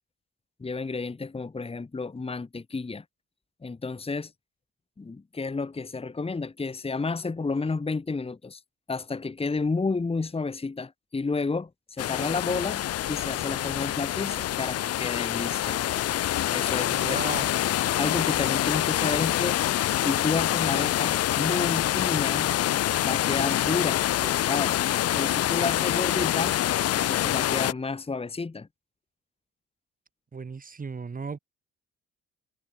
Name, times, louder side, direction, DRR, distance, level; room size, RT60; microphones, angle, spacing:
voice 1, 0.6-3.0 3.6-4.3 5.0-8.6 8.9-12.8 13.1-15.8 16.5-17.2 18.0-19.6 20.0-22.5 23.0-24.8 25.1-26.6 27.0-28.7, left 4 dB, 20° left, 1.4 m, -31 dB
sound 1, 12.0-27.7, left 13 dB, 55° left, 0.5 m, -26 dB
voice 2, 16.9-17.5 30.3-31.4, right 5 dB, 30° right, 1.7 m, -35 dB
cardioid pair, 90°, 30 cm